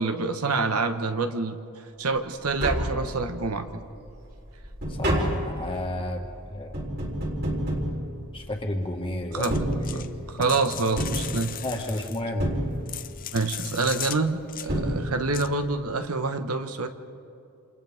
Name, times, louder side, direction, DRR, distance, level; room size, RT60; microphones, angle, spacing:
voice 1, 0.0-1.6 2.0-3.7 9.3-9.6 9.9-10.1 10.3-11.6 13.3-16.9, right 3 dB, 80° right, 7 dB, 1.3 m, -27 dB
Tap, 2.2-2.3 2.4-3.6 4.0-8.7 9.3-10.4 11.0-11.9 12.4-13.2 14.3-14.4 14.7-15.5 15.8-15.9, equal, 50° right, 4.1 m, -29 dB
voice 2, 4.9-6.8 8.3-9.5 9.8-10.6 11.6-12.6, left 1 dB, 25° left, 1 dB, 1.9 m, -32 dB
sound 1, 9.4-10.1 10.4-12.2 12.7-14.2 14.5-14.7 15.3-15.5, left 11 dB, 40° left, 0.6 m, -37 dB
28.5 x 28.5 x 3.6 m, 2.6 s
head